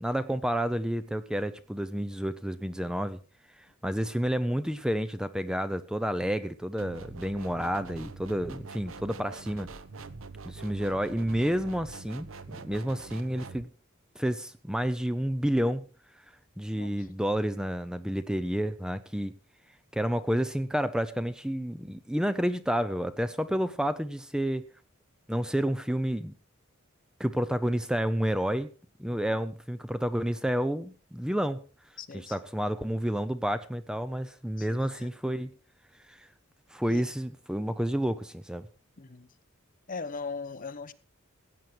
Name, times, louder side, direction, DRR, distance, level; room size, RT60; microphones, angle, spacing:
voice 1, 0.0-3.2 3.6-9.7 10.5-13.7 14.2-15.9 16.6-19.4 19.9-24.6 25.3-26.3 27.2-28.7 29.0-31.6 32.1-35.5 36.1-36.3 36.7-38.7, equal, 5° right, 0.6 m, -30 dB
sound 1, 6.8-13.6, right 4 dB, 70° right, 1.0 m, -44 dB
voice 2, 16.7-17.1 32.0-32.3 34.6-35.1 36.9-37.0 39.0-39.3 39.9-40.9, left 4 dB, 40° left, 1.0 m, -40 dB
16.5 x 9.3 x 4.8 m
head